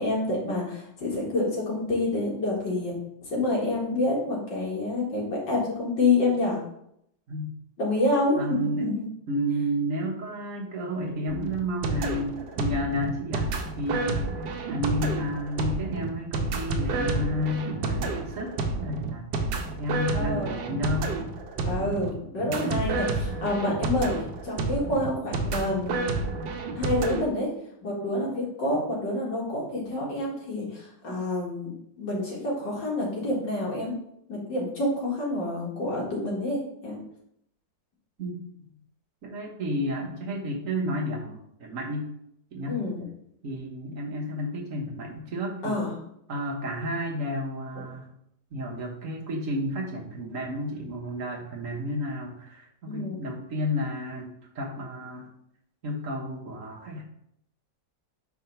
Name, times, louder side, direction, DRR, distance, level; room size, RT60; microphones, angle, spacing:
voice 1, 0.0-2.9 3.3-6.6 7.8-9.0 20.1-20.7 21.7-24.1 24.4-26.2 26.8-27.5 27.8-31.7 32.0-33.9 34.3-37.0 42.7-43.0 45.6-45.9 52.9-53.2, left 2 dB, 90° left, -4 dB, 2.5 m, -28 dB
voice 2, 8.4-8.9 9.3-14.2 14.6-19.4 19.8-21.2 21.7-22.0 38.2-38.4 39.2-42.1 42.5-42.8 43.4-45.8 46.3-48.1 48.5-55.3 55.8-57.0, equal, 50° right, 0 dB, 1.3 m, -31 dB
sound 1, 11.3-27.2, right 3 dB, 75° right, 1.3 m, -30 dB
4.8 x 3.5 x 5.5 m, 0.75 s
omnidirectional pair, 1.9 m